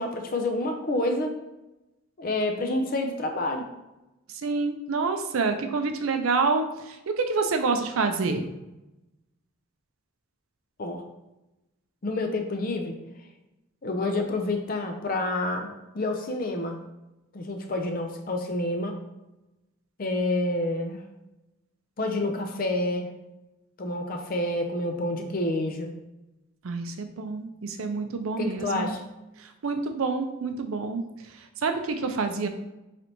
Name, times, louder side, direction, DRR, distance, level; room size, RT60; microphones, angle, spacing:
voice 1, 0.0-1.3 2.2-3.7 10.8-11.0 12.0-12.9 13.8-16.8 17.3-19.0 20.0-21.0 22.0-23.1 23.8-25.9 28.4-29.0, left 2 dB, 40° left, 4 dB, 0.5 m, -28 dB
voice 2, 4.3-8.5 26.6-28.9 29.4-32.5, right 4 dB, 80° right, 6 dB, 0.4 m, -28 dB
3.3 x 2.9 x 3.9 m, 0.97 s
head